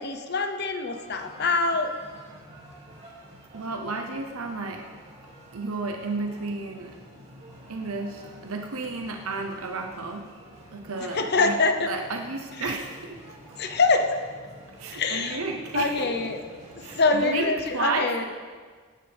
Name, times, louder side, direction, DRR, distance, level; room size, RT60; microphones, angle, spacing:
voice 1, 0.0-1.9 11.1-11.9 12.6-12.8 13.6-14.2 14.9-15.4 15.7-16.6 16.9-18.2, left 3 dB, 50° left, 6 dB, 0.9 m, -25 dB
sound 1, 0.9-17.4, right 1 dB, 30° right, 2.6 m, -49 dB
voice 2, 3.5-4.9 5.5-6.9 7.7-10.3 10.7-11.5 11.9-13.2 13.5-13.6 14.8-16.1 16.8-18.2, right 3 dB, 75° right, 3 dB, 0.9 m, -32 dB
18.0 x 9.8 x 3.5 m, 1.6 s
head